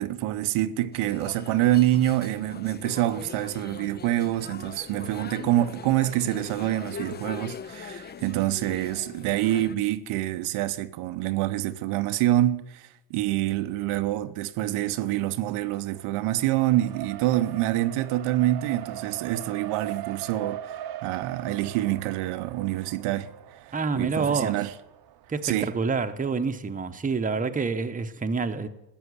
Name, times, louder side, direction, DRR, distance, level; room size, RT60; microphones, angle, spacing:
voice 1, 0.0-20.7 21.0-23.3 24.0-24.7 25.4-25.7, right 14 dB, 80° right, 0.9 m, -26 dB
sound 1, 0.9-9.7, left 6 dB, 20° left, 0.4 m, -41 dB
Race car auto racing, 14.9-25.9, right 11 dB, 50° right, 0.8 m, -41 dB
voice 2, 23.7-24.6 25.3-28.7, right 4 dB, 15° right, 0.9 m, -27 dB
14.5 x 7.2 x 9.8 m
cardioid pair, 110°, 49 cm